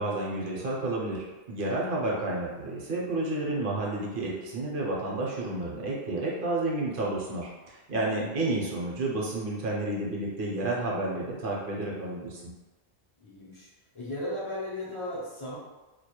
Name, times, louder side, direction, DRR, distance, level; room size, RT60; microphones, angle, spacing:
voice 1, 0.0-12.4, right 2 dB, 60° right, -3 dB, 0.7 m, -31 dB
voice 2, 13.2-13.7 13.9-15.6, left 1 dB, 45° left, -7 dB, 0.4 m, -36 dB
2.2 x 2.1 x 2.8 m, 1.1 s
omnidirectional pair, 1.1 m